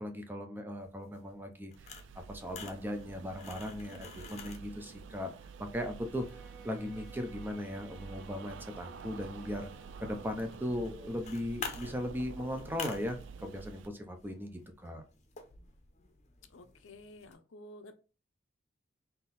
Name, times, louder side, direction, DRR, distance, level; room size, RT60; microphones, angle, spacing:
voice 1, 0.0-1.7 2.2-5.3 5.6-6.4 6.6-9.7 10.0-15.0, left 1 dB, 10° right, 5 dB, 0.6 m, -38 dB
sound 1, 0.8-17.3, left 5 dB, 35° left, 0.7 m, -50 dB
sound 2, 1.8-13.9, right 5 dB, 70° right, 0.4 m, -49 dB
Bowed string instrument, 5.8-10.8, right 5 dB, 45° right, 1.6 m, -57 dB
voice 2, 16.5-17.9, left 1 dB, 80° left, 8 dB, 0.6 m, -52 dB
3.8 x 2.7 x 4.0 m, 0.34 s
head